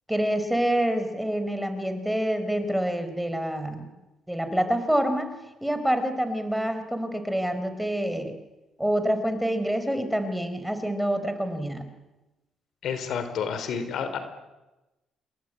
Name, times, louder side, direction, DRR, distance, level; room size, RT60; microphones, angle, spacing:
voice 1, 0.1-3.9 4.3-5.3 5.6-8.3 8.8-11.9, right 1 dB, 5° right, 8 dB, 4.5 m, -27 dB
voice 2, 12.8-14.2, left 6 dB, 70° left, 10 dB, 4.0 m, -30 dB
27.5 x 22.5 x 9.4 m, 1.1 s
cardioid pair, 90°, 0 cm